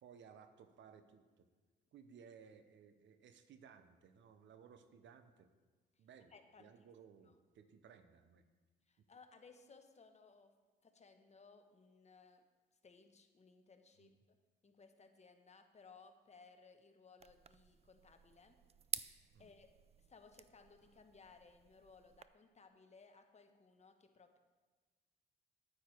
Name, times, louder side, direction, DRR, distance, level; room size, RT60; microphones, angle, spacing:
voice 1, 0.0-1.5 1.9-5.5 6.0-8.5 14.0-14.1 19.3-19.5, right 7 dB, 70° right, 10 dB, 0.8 m, -60 dB
voice 2, 6.3-6.7 7.2-7.3 8.9-10.5 10.8-12.4 12.8-14.4 14.6-18.6 19.4-19.7 20.1-24.4, left 4 dB, 35° left, 6 dB, 1.1 m, -62 dB
sound 1, 17.2-22.2, right 7 dB, 30° right, 0.4 m, -50 dB
9.5 x 8.8 x 4.5 m, 1.3 s
cardioid pair, 90°, 20 cm